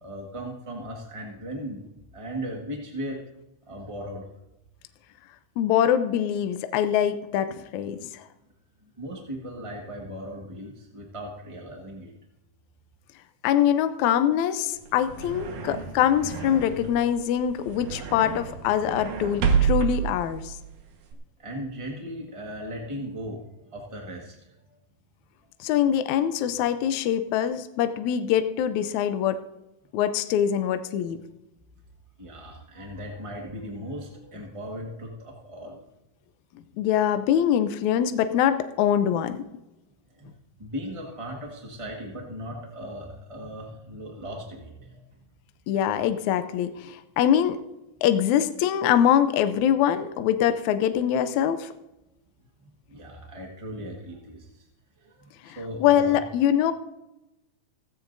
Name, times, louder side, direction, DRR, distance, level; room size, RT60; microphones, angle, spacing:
voice 1, 0.0-1.8 2.1-3.2 3.7-4.2 9.0-12.1 17.9-18.1 21.4-24.3 32.2-35.8 40.2-40.3 40.6-45.0 52.9-54.4 55.0-56.2, equal, 25° right, -1 dB, 0.6 m, -37 dB
voice 2, 5.6-8.2 13.4-20.6 25.6-29.4 29.9-31.2 36.8-39.4 45.7-47.6 48.0-51.7 55.5-56.7, left 10 dB, 75° left, 9 dB, 2.0 m, -23 dB
sound 1, 14.8-21.1, right 7 dB, 70° right, 2.7 m, -29 dB
16.5 x 15.5 x 2.6 m, 0.94 s
omnidirectional pair, 3.6 m